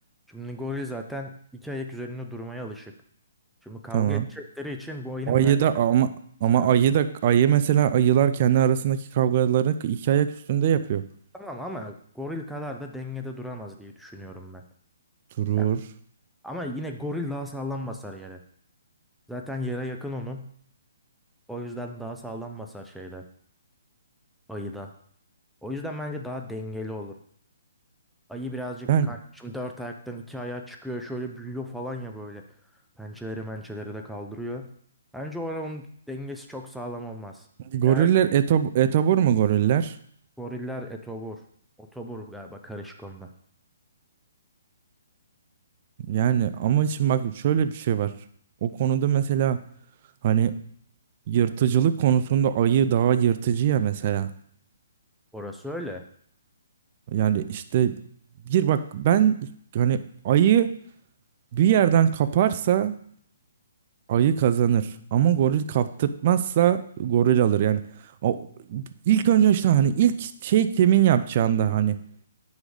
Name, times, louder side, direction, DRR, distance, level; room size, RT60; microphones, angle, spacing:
voice 1, 0.3-2.9 3.6-5.6 6.5-6.7 11.3-14.6 15.5-15.7 16.4-18.4 19.3-20.5 21.5-23.2 24.5-24.9 25.6-27.1 28.3-32.4 33.0-34.7 35.1-37.5 37.8-38.1 40.4-41.4 41.8-43.3 55.3-56.0, equal, ahead, 3 dB, 0.7 m, -35 dB
voice 2, 3.9-4.3 5.3-6.1 6.4-11.1 15.4-15.8 28.9-29.1 37.7-39.9 46.1-48.1 48.6-49.6 50.2-50.6 51.3-54.3 57.1-58.0 58.5-59.4 59.7-60.8 61.5-63.0 64.1-67.8 68.2-72.0, right 10 dB, 45° right, 12 dB, 0.6 m, -21 dB
9.8 x 4.1 x 5.0 m, 0.63 s
hypercardioid pair, 145°, 0 cm